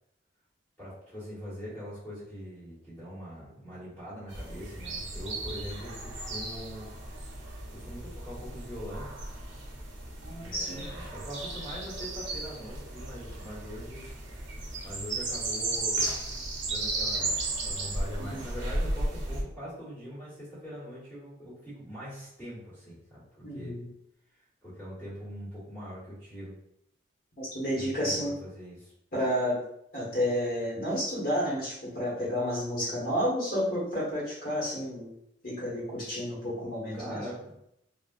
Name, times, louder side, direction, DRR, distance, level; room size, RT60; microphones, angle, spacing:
voice 1, 0.8-6.9 7.7-9.1 10.4-14.1 14.4-16.1 16.6-23.8 24.6-26.5 27.7-28.9 36.9-37.5, equal, 10° left, -10 dB, 1.4 m, -42 dB
sound 1, 4.3-19.4, right 2 dB, 65° right, 0.8 m, -35 dB
voice 2, 10.2-10.9 18.2-18.4 23.4-23.9 27.4-28.4 29.1-29.6 29.9-35.1 35.4-37.2, equal, 45° left, -6 dB, 1.2 m, -31 dB
3.6 x 2.4 x 2.5 m, 0.77 s
head